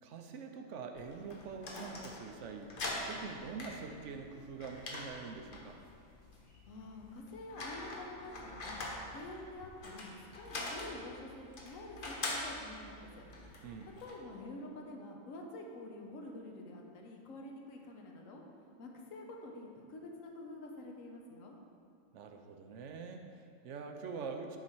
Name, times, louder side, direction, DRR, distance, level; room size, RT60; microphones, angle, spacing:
voice 1, 0.0-5.8 13.6-13.9 22.1-24.6, right 5 dB, 70° right, 5 dB, 0.9 m, -45 dB
sound 1, 1.0-14.2, left 2 dB, 45° left, 1.0 m, -44 dB
voice 2, 6.7-8.8 9.1-13.2 14.0-18.4 18.8-21.6, left 2 dB, 80° left, 1 dB, 1.2 m, -48 dB
10.5 x 4.1 x 4.5 m, 2.5 s
omnidirectional pair, 1.4 m